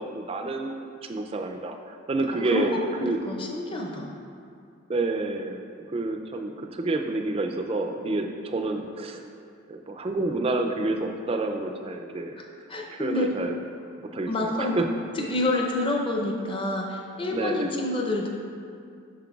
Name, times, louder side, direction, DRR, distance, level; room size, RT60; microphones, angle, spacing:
voice 1, 0.0-3.2 4.9-9.2 9.7-12.3 12.9-13.6 14.0-14.9 17.3-17.7, right 2 dB, 25° right, 4 dB, 0.3 m, -29 dB
voice 2, 2.4-4.2 12.4-13.3 14.3-14.8 15.2-18.3, left 2 dB, 25° left, -1 dB, 0.6 m, -28 dB
7.6 x 6.5 x 2.3 m, 2.4 s
head